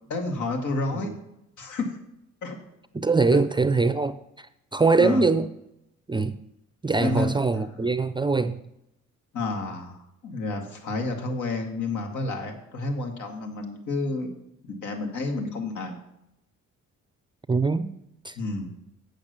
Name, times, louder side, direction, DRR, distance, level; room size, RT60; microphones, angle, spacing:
voice 1, 0.1-1.1 1.6-1.9 2.4-2.6 3.3-3.4 5.0-5.2 7.0-7.4 9.3-14.3 14.7-15.9 18.3-18.7, left 2 dB, 75° left, 2.2 m, -30 dB
voice 2, 2.9-5.5 6.1-6.4 6.8-8.6 17.5-17.9 18.2-18.4, right 3 dB, 15° right, 0.4 m, -23 dB
8.7 x 6.4 x 6.7 m
cardioid pair, 90°, 30 cm